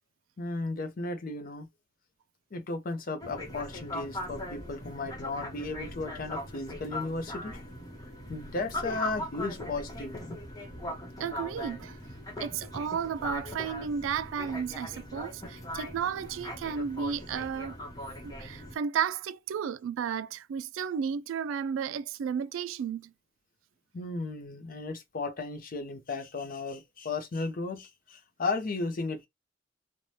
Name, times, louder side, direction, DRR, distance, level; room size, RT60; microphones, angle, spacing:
voice 1, 0.4-1.7 2.5-7.6 8.3-10.4 23.9-29.3, left 3 dB, 45° left, 0.5 m, -35 dB
sound 1, 3.2-18.7, left 1 dB, 20° left, 0.9 m, -40 dB
voice 2, 11.2-12.0 12.4-17.8 18.2-23.1, right 7 dB, 90° right, 0.3 m, -33 dB
3.2 x 2.1 x 2.7 m
head